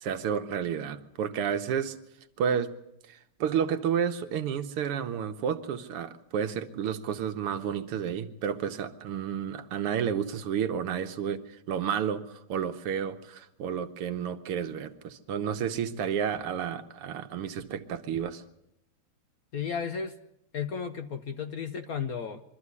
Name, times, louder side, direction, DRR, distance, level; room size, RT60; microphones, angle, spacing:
voice 1, 0.0-2.0 2.4-2.7 3.1-11.4 11.7-18.4, right 8 dB, 90° right, 8 dB, 2.0 m, -31 dB
voice 2, 19.5-20.1 20.5-22.4, left 6 dB, 55° left, 8 dB, 1.1 m, -33 dB
23.5 x 13.5 x 9.7 m, 0.79 s
omnidirectional pair, 2.4 m